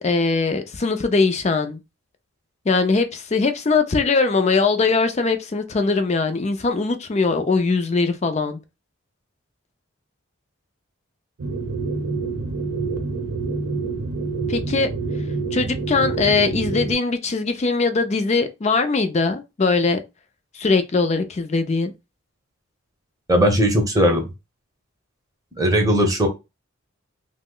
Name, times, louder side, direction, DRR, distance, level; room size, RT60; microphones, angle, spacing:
voice 1, 0.0-1.8 2.7-8.6 14.5-14.9 15.5-20.0 20.5-21.9, left 4 dB, 30° left, 0.4 m, -21 dB
sound 1, 11.4-16.9, right 3 dB, 90° right, 0.6 m, -27 dB
voice 2, 23.3-24.2 25.6-26.3, equal, 15° right, 0.7 m, -18 dB
2.9 x 2.1 x 3.7 m
head